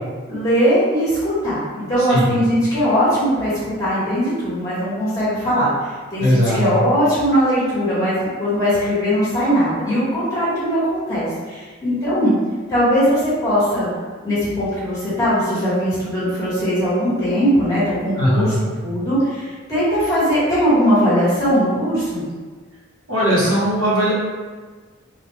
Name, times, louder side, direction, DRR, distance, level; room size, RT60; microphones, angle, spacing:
voice 1, 0.3-5.7 6.1-12.3 12.7-13.9 14.2-18.5 18.8-22.2, equal, 15° left, -11 dB, 1.4 m, -19 dB
voice 2, 2.0-2.3 6.2-6.6 18.1-18.6 23.1-24.1, equal, 75° right, -8 dB, 1.2 m, -18 dB
3.8 x 2.5 x 3.1 m, 1.4 s
head